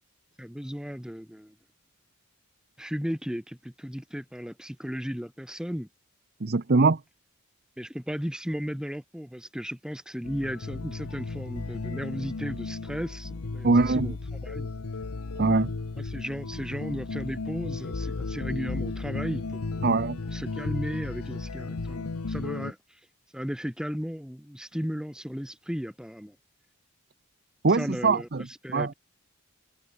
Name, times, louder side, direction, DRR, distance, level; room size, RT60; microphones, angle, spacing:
voice 1, 0.4-1.5 2.8-5.9 7.8-14.7 16.0-19.8 20.3-23.0 23.3-26.4 27.7-28.3 28.6-28.9, equal, 5° right, 1.7 m, -35 dB
voice 2, 6.4-7.0 13.6-14.1 15.4-15.7 19.8-20.2 27.6-28.9, right 3 dB, 45° right, 0.7 m, -23 dB
sound 1, 10.2-22.7, left 3 dB, 90° left, 0.9 m, -34 dB
head